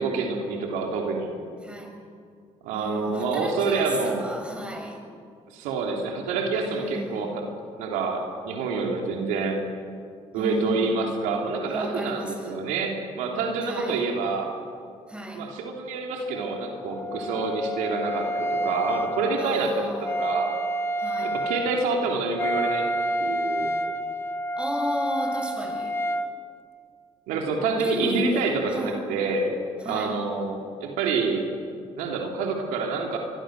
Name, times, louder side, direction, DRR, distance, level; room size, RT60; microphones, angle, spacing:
voice 1, 0.0-1.3 2.6-4.2 5.5-7.3 7.8-9.6 10.3-14.5 15.3-20.5 21.2-22.8 23.2-23.7 27.3-29.5 29.8-31.4 32.0-33.2, right 4 dB, 85° right, 1 dB, 3.2 m, -27 dB
voice 2, 1.6-2.0 2.7-5.0 6.5-7.4 10.3-11.1 11.7-12.6 13.6-14.0 15.1-15.4 19.4-20.3 21.0-21.4 24.6-26.0 27.8-29.0 29.8-30.2, equal, 10° right, 3 dB, 6.3 m, -33 dB
Wind instrument woodwind instrument, 16.3-26.3, equal, 20° left, 1.4 m, -29 dB
24.5 x 22.5 x 6.5 m, 2.2 s
supercardioid pair, 65°, 13 cm